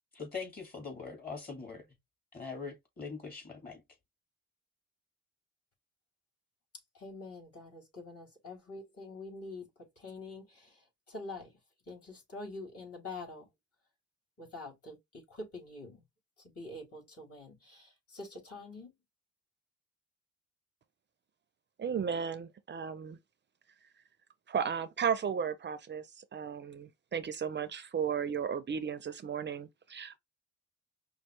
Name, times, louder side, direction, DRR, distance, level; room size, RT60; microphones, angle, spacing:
voice 1, 0.1-1.8 2.3-3.8, left 4 dB, 30° left, 2.5 m, -42 dB
voice 2, 7.0-9.7 10.0-10.7 11.1-11.5 11.9-13.5 14.4-16.0 16.5-18.9, left 2 dB, 50° left, 3.3 m, -45 dB
voice 3, 21.8-23.2 24.5-30.2, right 7 dB, 35° right, 0.6 m, -35 dB
5.5 x 2.3 x 3.2 m
cardioid pair, 90°, 30 cm